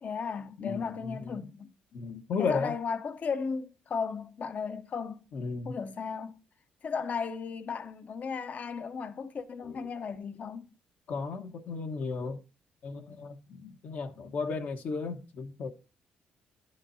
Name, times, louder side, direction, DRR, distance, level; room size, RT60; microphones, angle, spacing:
voice 1, 0.0-1.7 2.4-5.2 5.6-6.4 6.8-10.7, left 5 dB, 50° left, 0.9 m, -35 dB
voice 2, 0.6-1.4 1.9-2.7 5.3-5.8 9.6-9.8 11.1-12.4 12.8-15.7, left 4 dB, 65° left, 1.3 m, -34 dB
11.5 x 7.3 x 2.8 m
cardioid pair, 80°, 3 cm